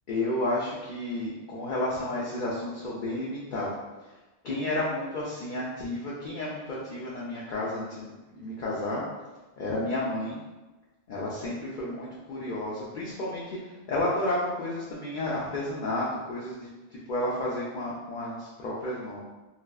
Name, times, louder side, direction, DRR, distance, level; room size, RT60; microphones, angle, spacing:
voice 1, 0.1-3.8 4.4-9.0 9.6-10.4 11.1-19.2, left 1 dB, 55° left, -5 dB, 0.6 m, -31 dB
4.0 x 2.3 x 2.3 m, 1.1 s
omnidirectional pair, 1.1 m